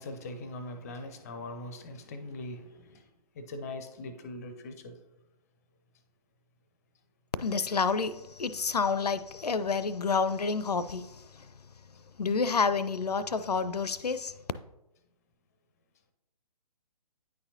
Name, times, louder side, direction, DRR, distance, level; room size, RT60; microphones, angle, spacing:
voice 1, 0.0-3.0 3.4-5.0, left 2 dB, 25° left, 0.5 m, -41 dB
voice 2, 7.4-11.1 12.2-14.3, left 5 dB, 80° left, 0.4 m, -29 dB
9.4 x 4.2 x 2.8 m
figure-of-eight pair, 135°, 20 cm